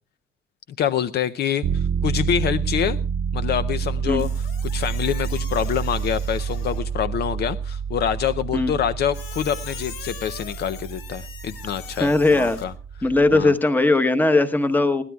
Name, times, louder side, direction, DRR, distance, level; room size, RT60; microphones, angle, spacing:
voice 1, 0.8-3.0 3.3-4.3 4.6-12.7 13.3-13.5, left 9 dB, 50° left, 13 dB, 0.6 m, -26 dB
sound 1, 1.6-13.5, right 6 dB, 55° right, 0.9 m, -28 dB
Squeak, 4.2-6.9 9.1-12.6, left 7 dB, 85° left, 3.2 m, -41 dB
voice 2, 12.0-12.6 13.0-15.0, left 2 dB, 10° left, 10 dB, 1.0 m, -19 dB
22.0 x 16.0 x 2.3 m, 0.36 s
cardioid pair, 170°, 21 cm